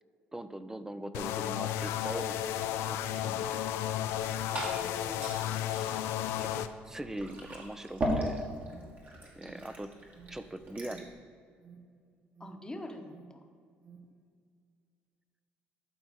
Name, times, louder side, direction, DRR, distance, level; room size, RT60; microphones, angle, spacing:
voice 1, 0.3-2.6 2.9-3.7 6.4-8.5 9.3-9.9 10.3-11.1, right 1 dB, 10° right, 12 dB, 0.5 m, -42 dB
sound 1, 1.1-6.7, left 11 dB, 80° left, 0.4 m, -33 dB
Liquid, 4.0-11.1, right 1 dB, 40° right, 2.0 m, -39 dB
voice 2, 4.5-5.3 9.4-9.7 12.4-13.4, left 1 dB, 15° left, 4 dB, 1.0 m, -45 dB
Alarm, 8.6-14.3, right 6 dB, 65° right, 1.8 m, -56 dB
11.5 x 4.5 x 4.2 m, 2.2 s
supercardioid pair, 70°, 4 cm